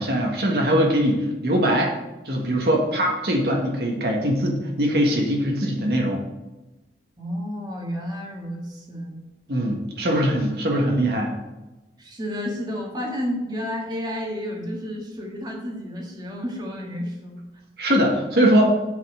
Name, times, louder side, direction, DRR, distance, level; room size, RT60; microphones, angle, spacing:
voice 1, 0.0-1.9 2.2-6.2 9.5-11.3 17.8-18.6, equal, 60° right, 0 dB, 1.6 m, -21 dB
voice 2, 7.2-9.2 12.0-17.4, equal, 25° right, -1 dB, 1.7 m, -31 dB
7.7 x 5.6 x 6.4 m, 1.1 s
head